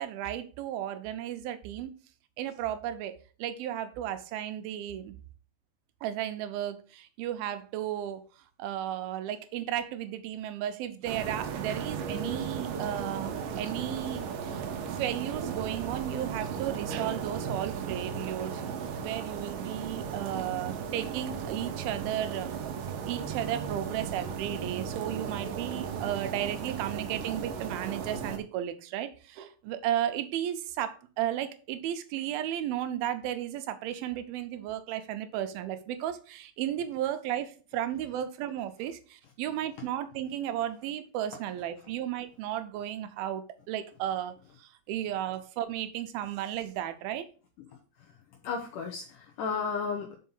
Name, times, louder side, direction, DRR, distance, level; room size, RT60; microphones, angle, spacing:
voice 1, 0.0-1.9 2.4-3.1 3.4-5.1 6.0-8.2 8.6-18.6 19.0-22.5 23.1-47.3, right 11 dB, 90° right, 9 dB, 2.6 m, -34 dB
sound 1, 11.0-28.4, right 6 dB, 75° right, 2.3 m, -36 dB
voice 2, 48.4-50.2, left 5 dB, 70° left, 1 dB, 2.3 m, -33 dB
5.7 x 5.4 x 5.4 m, 0.37 s
omnidirectional pair, 4.2 m